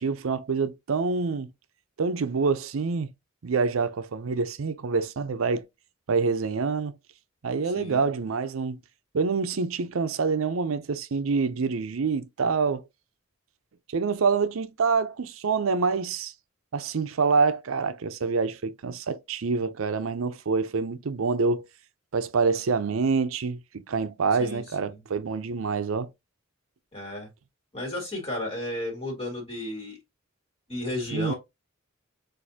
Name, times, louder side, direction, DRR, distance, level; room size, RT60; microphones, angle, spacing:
voice 1, 0.0-1.5 2.0-3.1 3.4-5.6 6.1-6.9 7.4-8.8 9.1-12.8 13.9-16.3 16.7-21.6 22.1-26.1 31.1-31.3, right 4 dB, 85° right, 0.5 m, -26 dB
voice 2, 7.7-8.0 24.4-25.0 26.9-27.3 27.7-30.0 30.7-31.3, left 1 dB, 30° left, 2.0 m, -33 dB
6.3 x 2.6 x 2.7 m
head